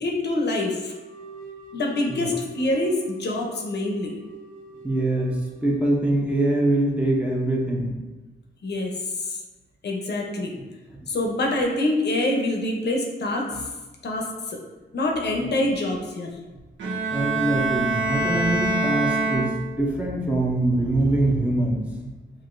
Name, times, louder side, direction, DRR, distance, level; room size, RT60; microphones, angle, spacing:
voice 1, 0.0-0.9 1.7-4.1 8.6-8.9 9.2-9.4 9.8-10.6 11.1-13.6 14.0-14.6 14.9-16.3, left 1 dB, 60° left, 0 dB, 0.7 m, -25 dB
sound 1, 0.8-7.6, right 1 dB, 45° right, 0.8 m, -45 dB
voice 2, 4.8-8.0 10.6-11.0 17.1-22.1, right 1 dB, 5° right, -3 dB, 0.7 m, -24 dB
Bowed string instrument, 16.8-20.0, right 2 dB, 75° right, 0.9 m, -25 dB
6.0 x 2.6 x 2.5 m, 1.2 s
wide cardioid pair, 125°, 20 cm